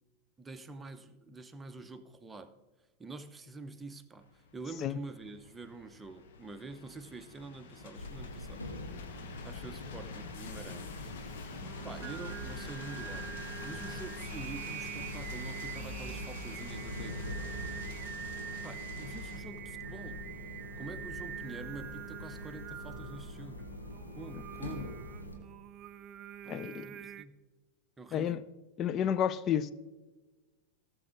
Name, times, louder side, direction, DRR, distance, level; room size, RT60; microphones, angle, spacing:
voice 1, 0.4-2.5 3.0-8.6 9.4-11.1 11.8-17.3 18.6-20.3 20.8-23.7 24.1-25.0 26.4-27.4 28.0-28.4, right 3 dB, 10° right, 0.7 m, -47 dB
sound 1, 4.2-19.4, left 5 dB, 55° left, 1.2 m, -48 dB
sound 2, 7.9-25.4, left 2 dB, 80° left, 1.7 m, -44 dB
Singing, 11.3-27.2, right 10 dB, 30° right, 0.4 m, -45 dB
voice 2, 26.5-26.9 28.1-28.4 28.8-29.7, left 9 dB, 30° left, 0.4 m, -30 dB
18.0 x 7.0 x 3.5 m
figure-of-eight pair, 90°, 0 cm